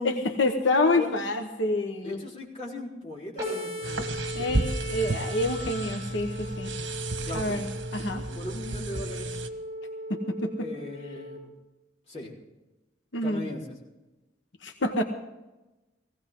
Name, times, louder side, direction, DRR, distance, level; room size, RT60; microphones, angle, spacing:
voice 1, 0.0-2.2 4.3-6.7 7.3-7.7 7.9-8.3 10.1-10.7 13.1-13.4 14.6-15.0, left 2 dB, 90° left, 4 dB, 1.2 m, -27 dB
voice 2, 2.0-4.5 7.2-7.6 8.3-9.4 10.6-11.5 12.1-12.3 13.2-13.7, left 1 dB, 35° left, -4 dB, 4.1 m, -38 dB
sound 1, 3.4-11.4, equal, 20° right, 5.9 m, -38 dB
sound 2, 3.8-9.5, right 2 dB, 80° right, 1.3 m, -33 dB
18.5 x 16.5 x 3.8 m, 1.1 s
head